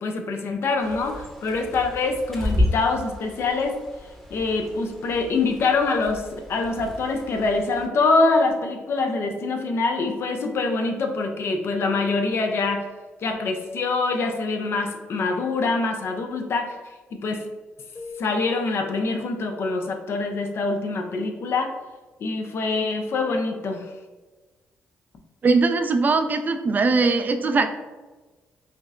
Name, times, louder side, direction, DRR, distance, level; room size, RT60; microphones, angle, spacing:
voice 1, 0.0-3.8 4.3-12.9 13.2-16.8 17.1-17.4 18.2-21.7 22.2-23.9, left 3 dB, 60° left, 5 dB, 0.5 m, -24 dB
Bird, 0.8-7.9, left 1 dB, 10° left, 0.9 m, -32 dB
Keyboard (musical), 18.0-20.0, left 6 dB, 25° left, 1.2 m, -42 dB
voice 2, 25.4-27.7, right 3 dB, 40° right, 7 dB, 0.3 m, -20 dB
5.1 x 2.0 x 2.4 m, 1.3 s
cardioid pair, 70°, 5 cm